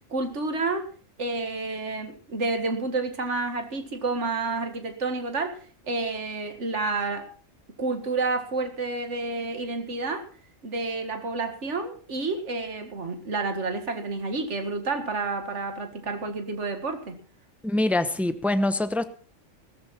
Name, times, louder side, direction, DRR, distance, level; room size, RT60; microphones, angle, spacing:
voice 1, 0.1-0.9 1.2-5.6 5.8-7.3 7.8-10.2 10.6-17.2, right 3 dB, 60° right, 6 dB, 2.2 m, -29 dB
voice 2, 17.6-19.1, left 1 dB, ahead, 11 dB, 0.8 m, -24 dB
16.5 x 14.0 x 4.3 m, 0.40 s
omnidirectional pair, 1.4 m